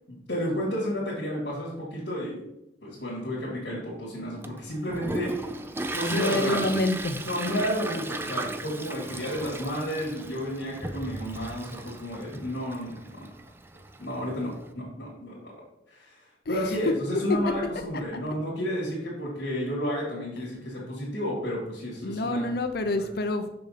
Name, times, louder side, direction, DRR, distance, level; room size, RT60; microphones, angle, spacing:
voice 1, 0.1-2.4 2.8-5.5 5.9-6.7 7.2-13.3 14.0-15.5 15.9-16.2 16.5-22.5, equal, 75° left, -7 dB, 2.6 m, -31 dB
Toilet flush, 4.4-14.7, right 2 dB, 15° right, 0.4 m, -36 dB
voice 2, 6.1-7.2 16.5-16.8 22.0-23.6, left 2 dB, 60° left, 8 dB, 0.6 m, -28 dB
6.7 x 6.5 x 4.1 m, 0.87 s
head